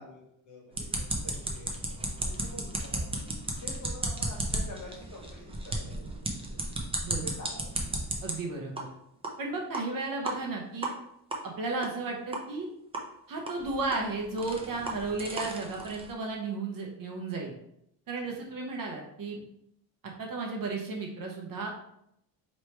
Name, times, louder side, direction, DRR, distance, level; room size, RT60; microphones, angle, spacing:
voice 1, 0.0-3.1 3.6-6.0 7.2-7.7 18.2-18.4, left 1 dB, 40° left, -3 dB, 1.6 m, -47 dB
sound 1, 0.7-8.3 8.8-8.9 9.2-9.3 9.7-9.8 10.3-10.4 10.8-10.9 11.3-11.4 11.8-11.9 12.3-12.4 12.9-13.0 13.5-16.1, right 2 dB, 15° right, 0.5 m, -34 dB
voice 2, 8.2-8.9 9.4-10.9 11.4-12.7 13.3-17.5 18.1-19.4 20.0-21.7, right 3 dB, 45° right, 0 dB, 0.8 m, -34 dB
4.4 x 3.1 x 3.2 m, 0.77 s
cardioid pair, 150°, 47 cm